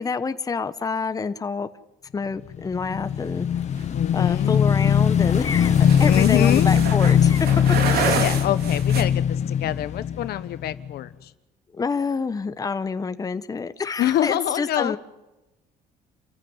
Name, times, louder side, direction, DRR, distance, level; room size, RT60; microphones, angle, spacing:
voice 1, 0.0-1.7 2.1-3.5 4.1-8.3 11.7-15.0, left 5 dB, 20° left, 11 dB, 1.0 m, -28 dB
Motorcycle / Engine, 2.5-11.0, left 8 dB, 45° left, 0.8 m, -21 dB
sound 1, 3.8-9.0, right 6 dB, 65° right, 3.3 m, -29 dB
voice 2, 3.9-4.6 6.0-6.7 7.9-11.1 14.0-15.0, left 13 dB, 70° left, 13 dB, 1.2 m, -25 dB
28.0 x 15.0 x 9.6 m, 1.0 s
cardioid pair, 110°, 17 cm